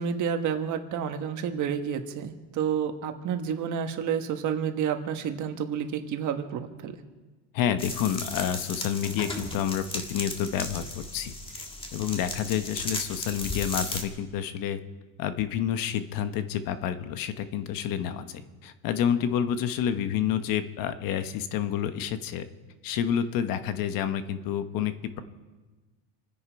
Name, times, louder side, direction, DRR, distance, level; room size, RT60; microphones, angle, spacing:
voice 1, 0.0-6.9, right 7 dB, 50° right, 6 dB, 1.5 m, -30 dB
voice 2, 7.5-11.7 11.9-14.8 15.2-22.5 22.8-25.2, left 9 dB, 60° left, 10 dB, 1.1 m, -29 dB
sound 1, 7.8-14.0, left 2 dB, 15° left, 1.7 m, -36 dB
28.0 x 10.0 x 4.7 m, 1.2 s
cardioid pair, 145°, 39 cm